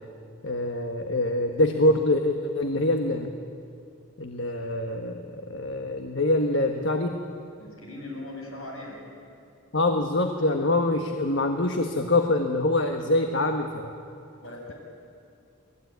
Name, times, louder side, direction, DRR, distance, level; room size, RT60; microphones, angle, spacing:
voice 1, 0.4-3.3 4.2-5.2 5.5-7.2 9.7-13.9, left 2 dB, 60° left, 5 dB, 1.4 m, -24 dB
voice 2, 7.6-9.0 13.0-13.1 14.4-14.7, left 2 dB, 80° left, -1 dB, 7.7 m, -39 dB
28.5 x 20.5 x 9.5 m, 2.5 s
head